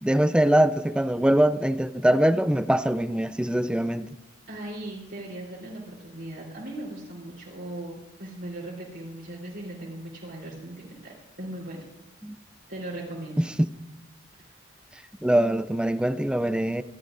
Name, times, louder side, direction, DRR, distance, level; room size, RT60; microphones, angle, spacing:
voice 1, 0.0-4.2 12.2-12.4 13.4-13.5 15.2-16.8, right 1 dB, 5° right, 0.4 m, -23 dB
voice 2, 4.5-11.9 12.7-13.5 14.4-14.5, right 1 dB, 65° right, 3.7 m, -38 dB
26.5 x 13.0 x 2.6 m
head